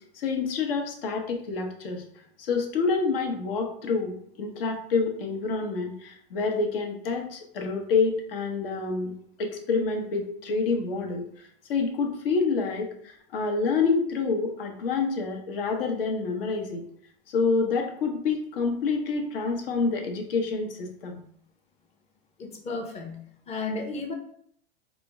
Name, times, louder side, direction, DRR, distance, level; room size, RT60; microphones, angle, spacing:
voice 1, 0.1-2.0 2.4-9.1 9.4-16.8 17.3-21.2, left 4 dB, 65° left, 2 dB, 0.9 m, -27 dB
voice 2, 22.4-24.1, left 3 dB, 20° left, 2 dB, 0.7 m, -34 dB
4.3 x 2.1 x 3.4 m, 0.65 s
hypercardioid pair, 120°, 30 cm